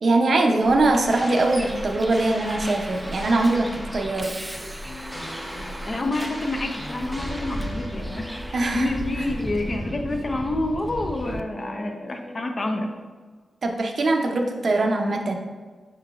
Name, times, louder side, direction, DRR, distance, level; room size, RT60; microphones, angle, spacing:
voice 1, 0.0-4.3 8.5-8.9 13.6-15.4, right 2 dB, 60° right, 2 dB, 0.5 m, -22 dB
sound 1, 0.6-8.5, equal, 15° left, 1.1 m, -38 dB
Bus, 0.9-11.4, right 1 dB, 5° right, 0.3 m, -36 dB
sound 2, 4.8-12.9, left 1 dB, 60° left, 1.2 m, -41 dB
voice 2, 5.8-12.9, left 2 dB, 40° left, 4 dB, 0.5 m, -28 dB
5.4 x 3.8 x 2.4 m, 1.4 s
cardioid pair, 75°, 0 cm